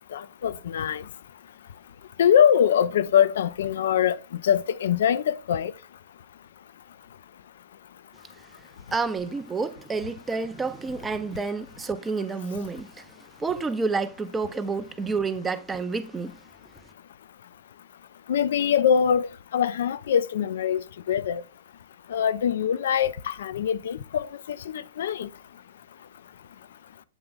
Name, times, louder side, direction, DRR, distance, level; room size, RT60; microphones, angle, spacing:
voice 1, 0.1-1.0 2.2-4.2 4.4-5.7 18.3-20.8 21.1-21.4 22.1-25.3, left 8 dB, 60° left, 0.4 m, -23 dB
voice 2, 8.9-13.1 13.4-16.4, right 4 dB, 10° right, 0.6 m, -29 dB
8.1 x 3.4 x 3.7 m
figure-of-eight pair, 115°, 0 cm